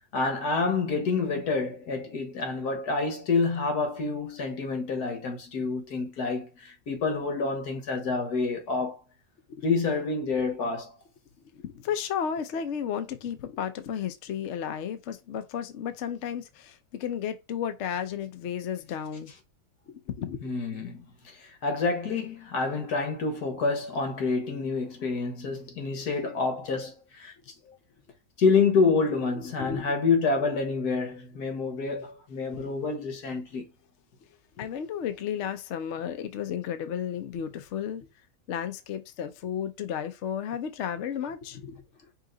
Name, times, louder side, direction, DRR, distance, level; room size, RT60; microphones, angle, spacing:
voice 1, 0.1-9.0 9.6-11.0 20.4-21.1 21.4-27.3 28.4-33.7, left 4 dB, 80° left, 1.8 m, -28 dB
voice 2, 11.5-19.3 19.9-20.5 29.4-29.9 32.6-32.7 34.6-38.1 38.5-41.8, left 8 dB, 60° left, 0.8 m, -33 dB
5.5 x 2.5 x 3.8 m
omnidirectional pair, 1.7 m